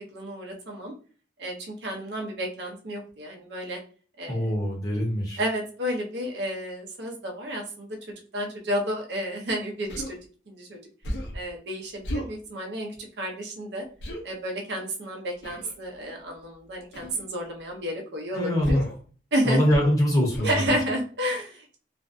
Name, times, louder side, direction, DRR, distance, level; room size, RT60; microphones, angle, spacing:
voice 1, 0.1-0.9 1.4-3.8 4.2-4.5 5.4-7.9 8.3-10.2 10.5-10.8 11.3-13.8 14.2-18.8 19.3-19.6 20.4-21.8, equal, 70° right, 1 dB, 0.7 m, -31 dB
voice 2, 4.3-5.4 18.3-18.8 19.4-20.7, equal, 20° left, -4 dB, 0.9 m, -23 dB
Human voice, 9.9-10.2 11.0-11.4 12.0-12.3 14.0-14.2 15.4-15.7 16.9-17.2 18.6-19.0 19.7-20.0 20.3-20.6, equal, 70° left, 0.6 m, -33 dB
2.5 x 2.1 x 2.5 m, 0.41 s
head